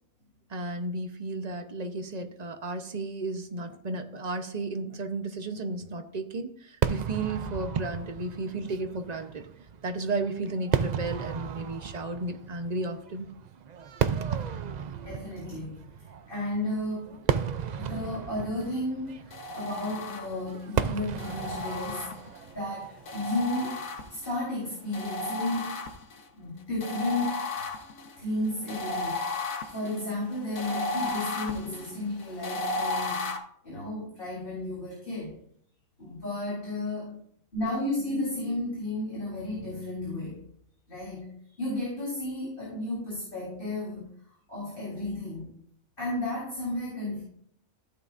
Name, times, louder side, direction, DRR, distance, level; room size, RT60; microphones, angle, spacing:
voice 1, 0.5-9.5 9.8-13.3 31.6-31.8, right 2 dB, 35° right, 6 dB, 0.9 m, -33 dB
Fireworks, 6.8-24.1, right 7 dB, 85° right, 0.3 m, -34 dB
voice 2, 15.0-15.9 16.3-17.2 17.8-22.2 22.5-25.8 26.4-27.5 28.2-33.3 33.6-35.4 36.0-37.2 37.5-40.4 40.9-44.1 44.5-45.5 46.0-47.2, left 1 dB, 40° left, -6 dB, 4.0 m, -33 dB
sound 1, 19.3-20.6 21.2-22.5 23.0-24.4 24.9-26.2 26.8-33.4, left 2 dB, 85° left, 1.5 m, -34 dB
14.5 x 8.8 x 2.6 m, 0.66 s
omnidirectional pair, 1.4 m